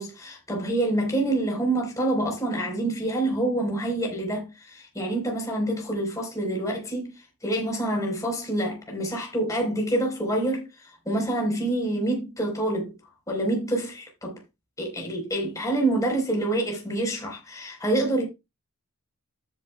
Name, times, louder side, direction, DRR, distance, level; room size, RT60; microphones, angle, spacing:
voice 1, 0.0-7.1 7.4-12.9 13.3-14.4 14.8-18.2, right 1 dB, 15° left, 4.1 m, -27 dB
14.0 x 7.5 x 2.3 m
head